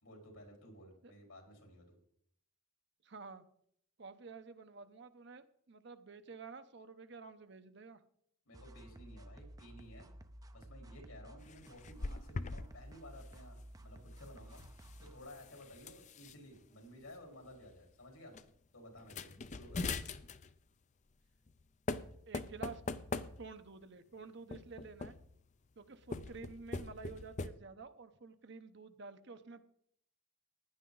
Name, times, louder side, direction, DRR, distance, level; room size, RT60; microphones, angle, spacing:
voice 1, 0.0-2.0 8.5-10.1 10.5-14.6 15.0-18.3 18.7-19.8, equal, 85° left, 1 dB, 4.4 m, -55 dB
voice 2, 3.0-3.4 4.0-8.0 22.3-22.8 23.2-25.2 25.8-29.7, right 4 dB, 55° right, 10 dB, 0.8 m, -51 dB
sound 1, 8.5-15.2, right 1 dB, 15° right, 0.5 m, -54 dB
sound 2, 11.4-12.7 13.0-13.3 14.4-16.3 17.1-17.2 17.5-17.8 18.3-18.4 19.0-20.6 21.5-21.6 21.9-23.7 24.5-25.4 26.0-27.5, left 3 dB, 35° left, 0.5 m, -42 dB
16.0 x 10.5 x 3.9 m, 0.70 s
head